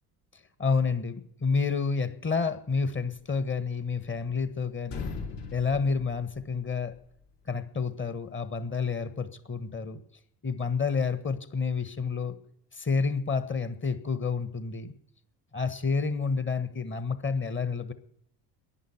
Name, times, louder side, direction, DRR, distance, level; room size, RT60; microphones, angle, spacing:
voice 1, 0.6-5.1 5.5-6.9 7.5-10.0 10.4-12.4 12.7-14.9 15.5-17.9, left 5 dB, 25° left, 12 dB, 1.5 m, -29 dB
sound 1, 3.8-4.5 4.8-6.9, left 4 dB, 55° left, 4.2 m, -40 dB
11.5 x 9.8 x 9.8 m, 0.71 s
hypercardioid pair, 60°, 49 cm